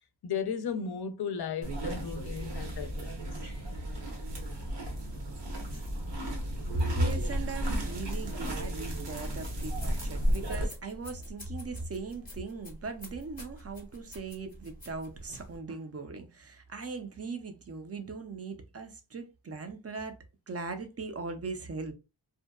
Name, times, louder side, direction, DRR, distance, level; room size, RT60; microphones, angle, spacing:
voice 1, 0.2-3.3 5.7-5.8, left 7 dB, 60° left, 0.5 m, -35 dB
sound 1, 1.6-10.7, equal, 65° right, 0.9 m, -34 dB
voice 2, 6.7-20.2 20.5-21.9, right 2 dB, 35° right, 0.4 m, -38 dB
sound 2, 9.3-15.6, equal, 20° left, 0.7 m, -47 dB
2.7 x 2.1 x 2.2 m
wide cardioid pair, 105°, 46 cm